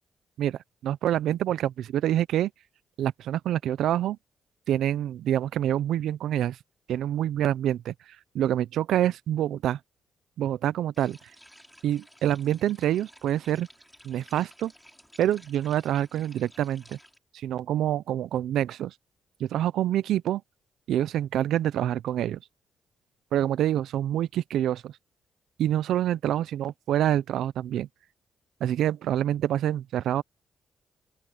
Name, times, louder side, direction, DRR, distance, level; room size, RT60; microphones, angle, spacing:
voice 1, 0.4-2.5 3.0-4.2 4.7-6.6 6.9-7.9 8.3-9.8 10.4-11.2 11.8-13.7 14.0-14.7 15.2-17.0 17.4-18.9 19.4-20.4 20.9-22.4 23.3-24.9 25.6-27.9 28.6-30.2, right 11 dB, 80° right, 0.7 m, -26 dB
sound 1, 10.9-17.2, equal, ahead, 6.4 m, -54 dB
open air
supercardioid pair, 60°, 0 cm